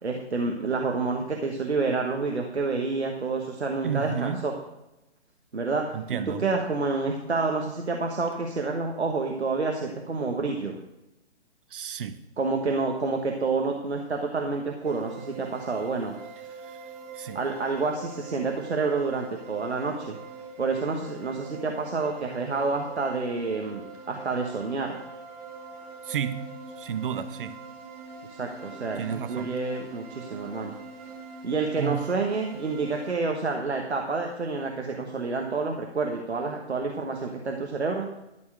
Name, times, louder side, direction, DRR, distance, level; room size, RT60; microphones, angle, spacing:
voice 1, 0.0-4.5 5.5-10.8 12.4-16.1 17.3-20.2 20.6-25.0 28.4-30.7 31.4-38.1, right 4 dB, 85° right, 2 dB, 1.4 m, -28 dB
voice 2, 3.8-4.4 5.9-6.4 11.7-12.2 16.6-16.8 17.1-17.4 26.0-26.4 26.8-27.6 29.0-29.5 31.8-32.0, right 8 dB, 55° right, 11 dB, 0.9 m, -31 dB
sound 1, 14.8-33.2, right 4 dB, 35° right, 2.0 m, -43 dB
12.5 x 4.6 x 7.5 m, 0.92 s
figure-of-eight pair, 135°, 32 cm